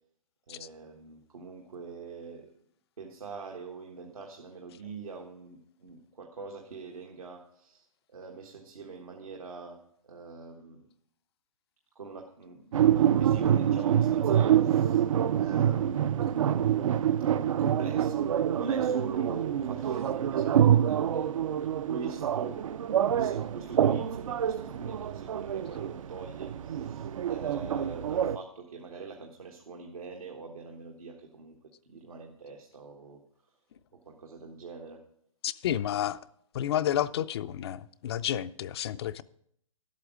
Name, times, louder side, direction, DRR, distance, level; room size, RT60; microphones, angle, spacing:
voice 1, 0.5-2.5 3.0-7.9 8.1-10.9 11.9-15.1 15.4-16.4 17.6-22.7 23.1-31.6 31.8-33.2 34.0-35.0, right 4 dB, 90° right, 1.4 m, -43 dB
sound 1, 12.7-28.4, right 10 dB, 65° right, 0.5 m, -26 dB
voice 2, 35.4-36.2 36.5-39.2, left 11 dB, 45° left, 0.5 m, -30 dB
11.5 x 8.2 x 4.9 m
hypercardioid pair, 140°, 18 cm